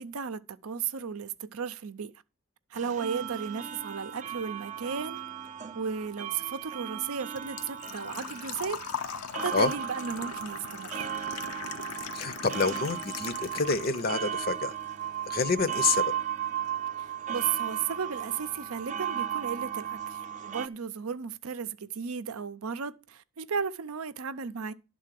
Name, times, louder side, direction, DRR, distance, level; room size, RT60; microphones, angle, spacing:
voice 1, 0.0-2.1 2.7-5.2 5.7-8.8 9.4-11.1 17.0-24.7, right 6 dB, 80° right, 0.6 m, -34 dB
sound 1, 2.7-20.7, right 9 dB, 35° right, 0.4 m, -36 dB
Engine / Trickle dribble / Fill (with liquid), 6.4-14.3 14.7-15.7 15.9-16.0 18.0-18.1 18.2-18.6 18.9-19.0 19.3-19.4, left 7 dB, 90° left, 0.7 m, -40 dB
voice 2, 12.1-14.7 15.3-16.0, left 4 dB, 45° left, 0.6 m, -28 dB
11.5 x 3.8 x 7.5 m
head